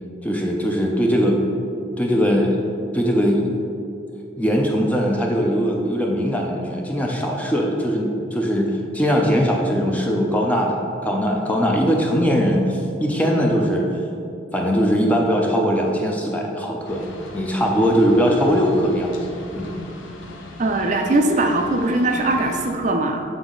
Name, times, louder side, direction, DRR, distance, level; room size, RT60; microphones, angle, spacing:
voice 1, 0.2-1.7 2.0-3.6 4.4-13.9 14.5-19.2 19.6-19.8, equal, 10° left, 0 dB, 0.5 m, -20 dB
sound 1, 16.8-22.7, left 2 dB, 85° left, 0.8 m, -39 dB
voice 2, 20.6-23.2, right 2 dB, 40° right, 3 dB, 0.4 m, -20 dB
8.0 x 4.0 x 3.8 m, 2.6 s
head